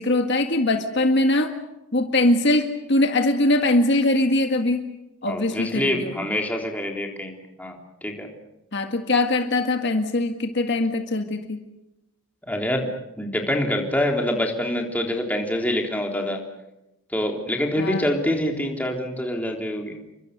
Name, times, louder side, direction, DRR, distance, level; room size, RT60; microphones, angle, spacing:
voice 1, 0.0-1.5 1.9-4.8 5.2-6.2 8.7-11.6 17.8-18.0, left 2 dB, 50° left, 6 dB, 1.8 m, -22 dB
voice 2, 5.3-8.3 12.5-12.9 13.2-16.4 17.1-20.0, left 1 dB, 5° left, 1 dB, 3.4 m, -26 dB
29.5 x 24.0 x 6.7 m, 0.93 s
head